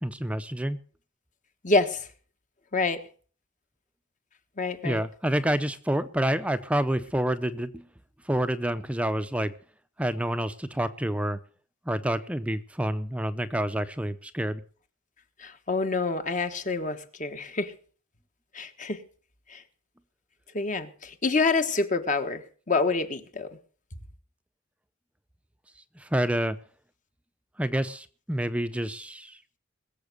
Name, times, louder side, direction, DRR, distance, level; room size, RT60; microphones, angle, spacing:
voice 1, 0.0-0.8 4.8-7.9 8.2-9.5 10.0-11.4 11.9-14.6 26.0-26.6 27.6-29.4, right 1 dB, 5° right, 0.6 m, -28 dB
voice 2, 1.6-2.1 2.7-3.0 4.6-5.0 15.4-17.7 18.5-19.0 19.5-19.6 20.5-23.5, left 3 dB, 40° left, 1.4 m, -27 dB
21.0 x 7.3 x 6.7 m
head